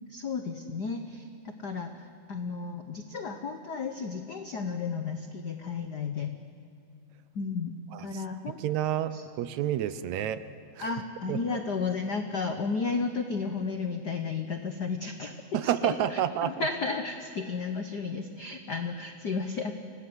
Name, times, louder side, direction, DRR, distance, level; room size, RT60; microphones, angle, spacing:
voice 1, 0.1-1.3 1.6-6.4 7.3-8.6 9.1-9.2 10.8-19.7, left 4 dB, 80° left, 6 dB, 0.9 m, -33 dB
voice 2, 8.6-10.4 10.8-10.9 11.3-11.4 15.5-16.7, right 11 dB, 75° right, 13 dB, 2.1 m, -29 dB
27.0 x 18.5 x 7.8 m, 2.5 s
omnidirectional pair, 3.4 m